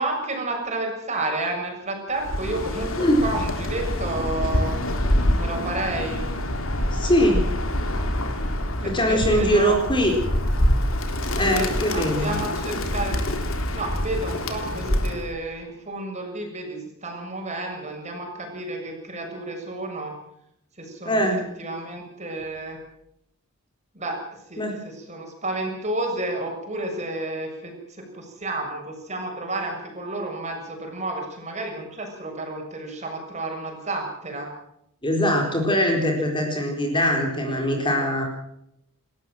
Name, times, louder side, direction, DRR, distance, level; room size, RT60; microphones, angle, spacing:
voice 1, 0.0-4.7 5.4-6.2 8.8-9.8 11.5-13.2 13.7-20.1 20.8-21.2 21.6-22.8 23.9-24.2 24.5-34.5, right 2 dB, 30° right, 2 dB, 6.9 m, -31 dB
Bird, 2.2-15.3, left 1 dB, 65° left, 3.4 m, -26 dB
voice 2, 6.9-7.5 8.8-10.2 11.3-12.3 21.0-21.5 24.6-24.7 35.0-38.2, equal, 20° left, 2 dB, 4.2 m, -22 dB
29.5 x 14.0 x 7.6 m, 0.77 s
head